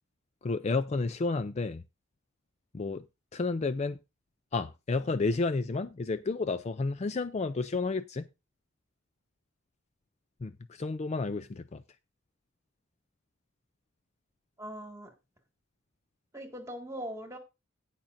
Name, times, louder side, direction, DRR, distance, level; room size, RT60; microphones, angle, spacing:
voice 1, 0.4-1.8 2.7-3.0 3.3-4.0 4.5-8.3 10.4-11.8, left 3 dB, 30° left, 0.4 m, -31 dB
voice 2, 14.6-15.1 16.3-17.4, equal, 15° right, 2.0 m, -40 dB
17.5 x 5.9 x 2.6 m
head